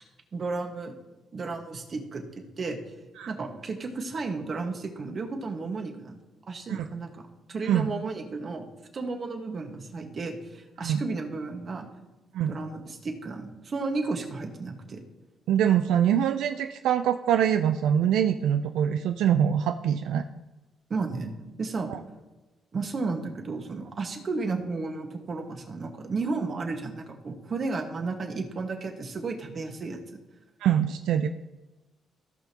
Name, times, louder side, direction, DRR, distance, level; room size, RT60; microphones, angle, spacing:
voice 1, 0.3-0.9 1.3-2.2 2.6-2.8 3.3-6.2 6.5-7.2 7.5-8.7 8.9-11.9 12.5-15.0 20.9-21.3 21.6-21.9 22.7-30.0, right 3 dB, 45° right, 4 dB, 1.5 m, -33 dB
voice 2, 15.5-20.2 21.9-22.0 30.6-31.3, right 9 dB, 85° right, 7 dB, 0.4 m, -24 dB
16.5 x 5.8 x 2.9 m, 1.1 s
cardioid pair, 90°, 0 cm